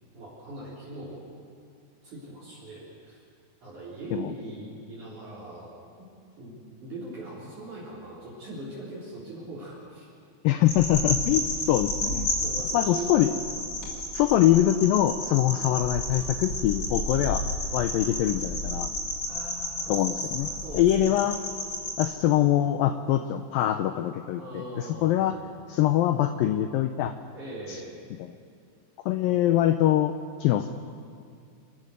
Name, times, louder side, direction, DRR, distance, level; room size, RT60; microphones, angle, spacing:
voice 1, 0.1-1.2 2.0-3.2 3.6-5.7 6.0-6.1 6.4-6.5 6.8-10.0 11.1-11.2 12.4-13.3 19.2-21.2 24.3-25.5 27.3-28.0 29.2-29.4, right 2 dB, 45° right, -7 dB, 5.2 m, -41 dB
voice 2, 10.4-12.3 12.7-13.3 14.1-17.5 17.7-18.9 19.9-20.5 20.7-21.4 22.0-25.3 25.7-27.1 27.7-27.8 28.2-28.3 29.1-30.1 30.4-30.7, left 12 dB, 90° left, 9 dB, 2.0 m, -23 dB
sound 1, 10.7-22.1, left 1 dB, 35° left, 3.6 m, -31 dB
28.0 x 14.0 x 6.6 m, 2.4 s
omnidirectional pair, 4.9 m